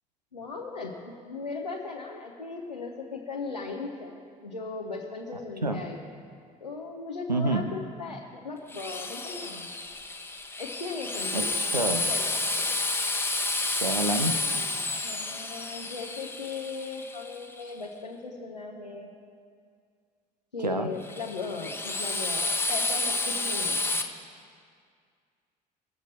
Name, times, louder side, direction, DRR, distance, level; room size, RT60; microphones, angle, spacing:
voice 1, 0.3-4.2 4.4-6.0 6.6-9.7 10.6-11.5 12.1-12.2 12.6-12.7 15.0-19.1 20.5-24.0, left 4 dB, 85° left, -2 dB, 0.8 m, -37 dB
voice 2, 7.3-7.7 11.3-12.1 13.8-14.4 20.6-20.9, right 2 dB, 90° right, 7 dB, 0.5 m, -28 dB
Drill, 8.7-17.6 21.0-24.0, left 2 dB, 10° left, 0.9 m, -30 dB
21.0 x 7.3 x 4.1 m, 2.2 s
figure-of-eight pair, 55°, 21 cm